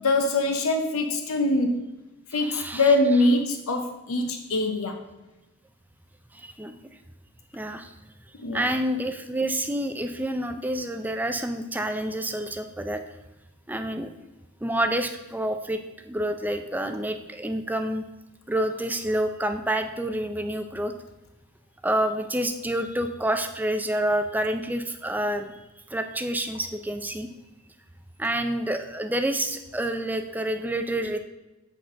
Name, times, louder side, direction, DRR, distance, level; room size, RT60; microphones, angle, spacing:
voice 1, 0.0-1.8 2.3-5.0 8.4-8.7, left 2 dB, 70° left, 4 dB, 0.7 m, -23 dB
voice 2, 2.3-3.0 6.3-6.7 7.5-7.9 8.5-13.0 13.7-14.1 14.6-15.8 16.0-18.0 18.5-20.9 21.8-25.5 25.9-27.3 28.2-31.2, right 1 dB, 10° right, 7 dB, 0.4 m, -28 dB
8.0 x 4.2 x 6.2 m, 1.0 s
head